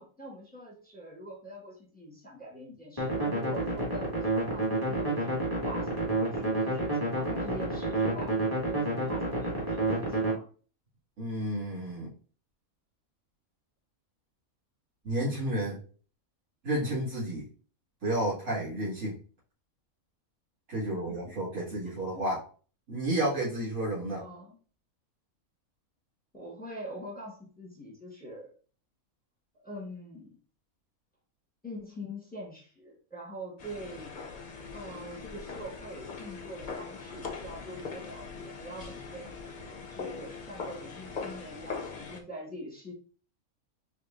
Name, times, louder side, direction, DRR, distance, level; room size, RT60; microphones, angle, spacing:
voice 1, 0.0-10.5 20.9-22.2 24.1-24.6 26.3-28.5 29.6-30.4 31.6-34.1 34.7-39.3 39.9-42.9, equal, 5° left, -2 dB, 1.2 m, -44 dB
sound 1, 3.0-10.3, right 2 dB, 15° right, 1.8 m, -29 dB
voice 2, 11.2-12.1 15.0-15.8 16.6-17.5 18.0-19.1 20.7-22.4 22.9-24.2, right 1 dB, 75° right, -9 dB, 2.6 m, -31 dB
sound 2, 33.6-42.2, left 5 dB, 45° left, 0.6 m, -41 dB
4.9 x 3.0 x 2.5 m, 0.39 s
omnidirectional pair, 1.5 m